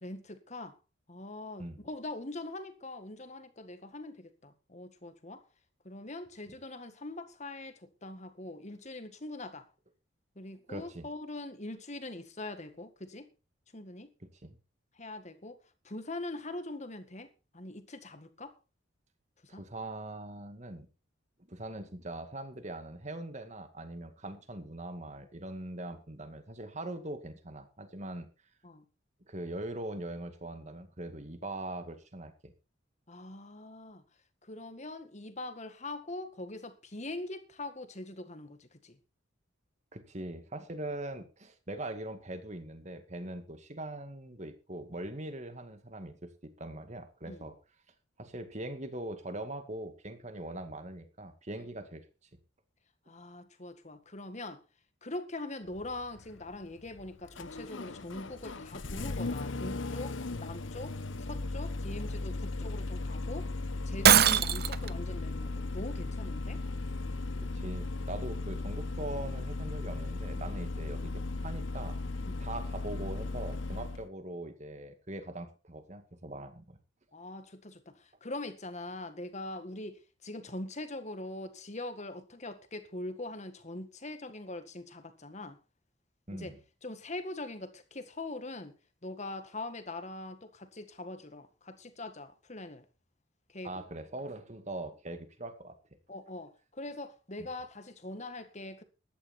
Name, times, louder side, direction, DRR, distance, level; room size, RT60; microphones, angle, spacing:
voice 1, 0.0-0.8 1.1-5.4 5.8-9.7 10.4-13.3 13.7-14.1 15.0-15.6 15.8-17.3 17.5-18.5 19.5-19.6 28.6-28.8 33.1-34.0 34.4-39.0 47.3-47.5 53.1-54.6 55.0-63.5 63.9-66.6 72.2-72.5 77.1-85.6 86.3-86.5 86.8-88.7 89.0-92.9 93.5-93.8 96.1-98.8, left 2 dB, 35° left, 1.8 m, -42 dB
voice 2, 10.7-11.1 14.2-14.6 19.5-20.9 21.5-28.3 29.3-32.5 39.9-47.5 48.2-52.0 64.3-64.4 67.6-72.0 72.4-76.8 86.3-86.6 93.6-95.8 97.4-97.5, right 1 dB, 35° right, 2.1 m, -41 dB
Engine starting, 55.7-74.1, left 2 dB, 80° left, 1.0 m, -37 dB
Shatter, 64.0-64.9, right 9 dB, 55° right, 0.7 m, -21 dB
14.5 x 11.5 x 4.4 m
head